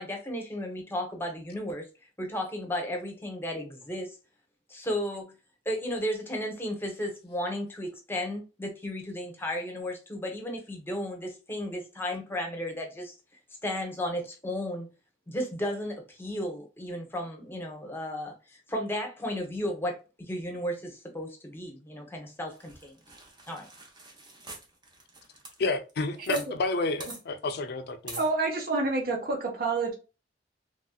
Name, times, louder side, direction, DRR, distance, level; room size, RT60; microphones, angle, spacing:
voice 1, 0.0-1.9 2.2-4.1 4.7-5.3 5.6-13.1 13.6-14.9 15.3-18.4 18.7-23.0 23.5-23.7, left 1 dB, 10° left, 0.8 m, -34 dB
sound 1, 22.5-26.5 26.7-26.8 27.0-27.2 28.1-28.3, right 2 dB, 25° right, 0.7 m, -44 dB
voice 2, 25.6-28.2, left 3 dB, 60° left, 0.5 m, -30 dB
voice 3, 28.2-29.9, right 3 dB, 55° right, 1.0 m, -28 dB
3.1 x 2.6 x 2.2 m
head